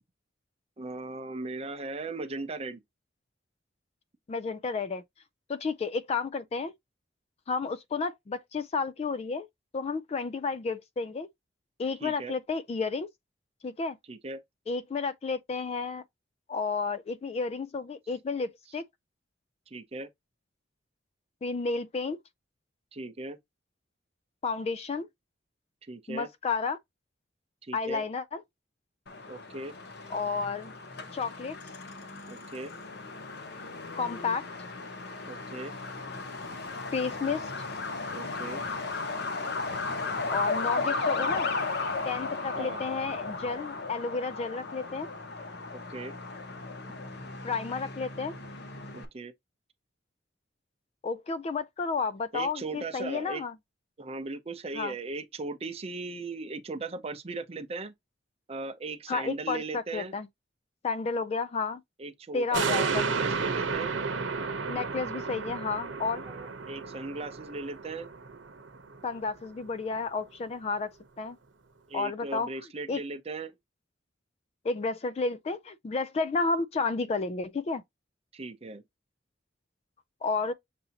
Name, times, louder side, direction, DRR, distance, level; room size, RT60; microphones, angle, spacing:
voice 1, 0.8-2.8 12.0-12.3 14.1-14.4 19.7-20.1 22.9-23.4 25.9-26.3 27.6-28.0 29.3-29.7 32.3-32.7 35.2-35.7 38.1-38.6 42.6-42.8 45.7-46.1 48.9-49.3 52.3-53.4 54.0-57.9 58.5-60.1 62.0-63.9 66.2-68.1 71.9-73.6 78.3-78.8, right 3 dB, 35° right, 0.6 m, -38 dB
voice 2, 4.3-5.0 5.5-6.7 7.5-9.5 9.7-11.3 11.8-13.1 13.6-14.0 14.7-16.0 16.5-18.8 21.4-22.2 24.4-25.1 26.1-26.8 27.7-28.4 30.1-30.7 31.1-31.6 34.0-34.5 36.9-37.5 40.3-41.5 42.0-45.1 47.4-48.3 51.0-53.5 54.7-54.9 59.1-60.3 60.8-61.8 62.3-63.1 64.7-66.2 69.0-70.9 71.2-71.4 71.9-72.5 72.9-73.0 74.6-77.8 80.2-80.5, left 4 dB, 35° left, 0.3 m, -31 dB
Truck, 29.1-49.1, left 3 dB, 60° left, 0.9 m, -35 dB
sound 1, 62.5-69.2 69.6-69.7, right 4 dB, 90° right, 0.8 m, -32 dB
6.8 x 2.7 x 2.8 m
head